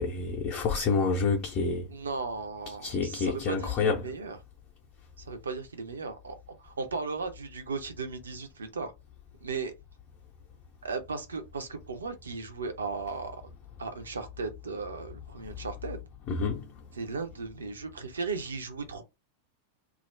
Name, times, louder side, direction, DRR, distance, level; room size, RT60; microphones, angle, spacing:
voice 1, 0.0-1.9 2.8-4.0 16.3-16.7, left 4 dB, 40° left, 0.5 m, -28 dB
voice 2, 1.9-4.4 5.2-8.9 9.4-9.7 10.8-13.4 13.8-16.0 16.9-19.0, right 4 dB, 70° right, 0.5 m, -36 dB
2.3 x 2.0 x 3.1 m
figure-of-eight pair, 90°, 0 cm